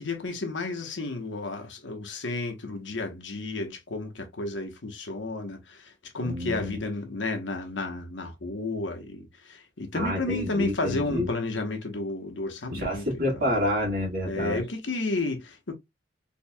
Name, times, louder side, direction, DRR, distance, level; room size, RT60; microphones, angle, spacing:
voice 1, 0.0-13.1 14.2-15.7, left 2 dB, 75° left, 1.0 m, -32 dB
voice 2, 6.2-6.8 9.9-11.3 12.7-14.6, left 1 dB, 50° right, 1.9 m, -28 dB
4.4 x 2.9 x 2.2 m
head